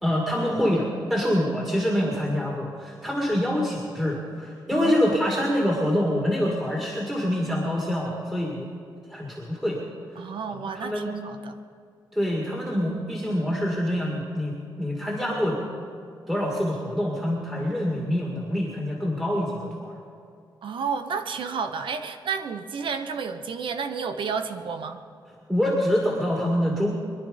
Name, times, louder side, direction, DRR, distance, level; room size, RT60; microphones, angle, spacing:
voice 1, 0.0-8.7 9.1-9.8 10.5-11.2 12.1-15.6 16.3-20.0 25.5-26.9, equal, 5° right, -3 dB, 2.1 m, -26 dB
voice 2, 4.7-5.2 10.2-11.5 20.6-25.0, right 6 dB, 80° right, 8 dB, 1.1 m, -31 dB
23.5 x 11.0 x 5.3 m, 2.3 s
wide cardioid pair, 160°, 8 cm